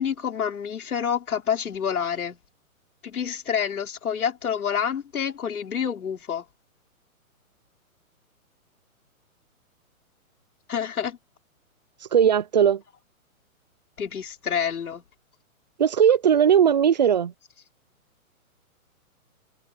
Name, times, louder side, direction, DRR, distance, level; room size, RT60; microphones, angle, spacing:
voice 1, 0.0-2.4 3.0-6.4 10.7-11.2 14.0-15.0, left 8 dB, 90° left, 5.1 m, -28 dB
voice 2, 12.1-12.8 15.8-17.3, right 8 dB, 35° right, 0.4 m, -18 dB
hypercardioid pair, 160°, 42 cm